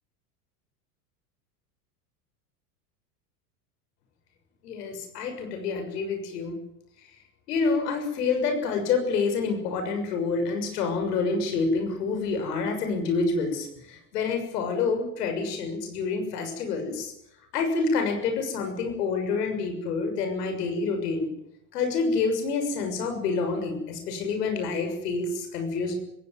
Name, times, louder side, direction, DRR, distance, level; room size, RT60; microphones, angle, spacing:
voice 1, 4.6-6.6 7.5-17.1 17.5-21.3 21.7-25.9, left 4 dB, 80° left, 5 dB, 6.7 m, -27 dB
19.5 x 17.0 x 9.6 m, 0.80 s
hypercardioid pair, 100°, 47 cm